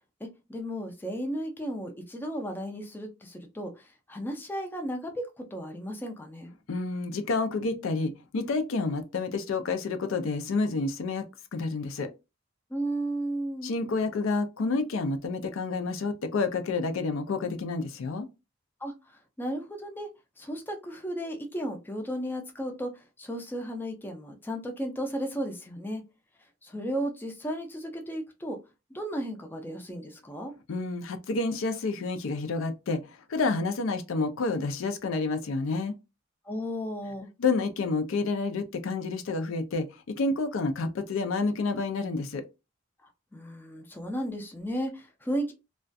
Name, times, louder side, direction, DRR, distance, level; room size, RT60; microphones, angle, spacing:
voice 1, 0.2-6.5 12.7-13.8 18.8-20.1 20.4-26.0 26.6-28.6 28.9-30.5 36.4-37.3 43.3-45.5, equal, 10° left, 0.4 m, -34 dB
voice 2, 6.7-11.2 11.5-12.1 13.6-18.3 30.7-35.9 37.4-42.4, left 3 dB, 75° left, 0.4 m, -29 dB
2.3 x 2.2 x 2.5 m
head